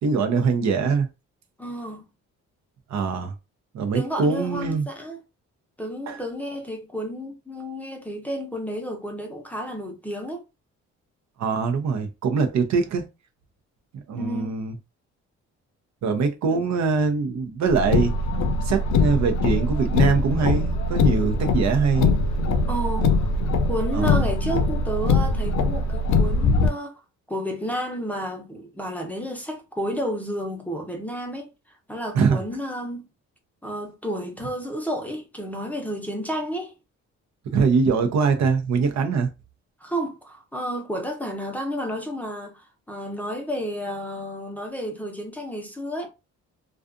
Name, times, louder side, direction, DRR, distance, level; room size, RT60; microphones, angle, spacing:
voice 1, 0.0-1.1 2.9-3.3 3.7-4.8 6.1-6.2 11.4-13.1 14.1-14.7 16.0-18.1 18.6-22.1 23.9-24.3 32.1-32.4 37.5-39.3, right 5 dB, 65° right, 0.7 m, -23 dB
voice 2, 1.6-2.0 3.9-5.2 5.8-10.4 14.1-14.6 16.5-16.6 22.7-23.3 23.6-27.0 27.3-31.5 31.9-33.0 33.6-36.7 39.8-46.1, equal, 5° left, 0.7 m, -31 dB
Car, 17.7-26.7, left 3 dB, 70° left, 0.5 m, -22 dB
2.4 x 2.4 x 2.5 m
cardioid pair, 90°, 30 cm